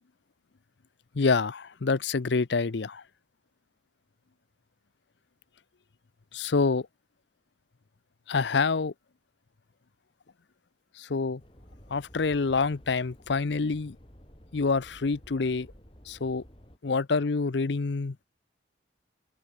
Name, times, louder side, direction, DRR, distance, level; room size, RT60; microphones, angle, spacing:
voice 1, 1.1-3.0 6.3-6.9 8.3-8.9 11.0-11.4 11.9-14.0 14.5-15.7 16.1-16.4 16.8-18.2, left 4 dB, 70° left, 0.6 m, -27 dB
sound 1, 11.4-16.8, equal, 30° left, 5.4 m, -53 dB
open air
head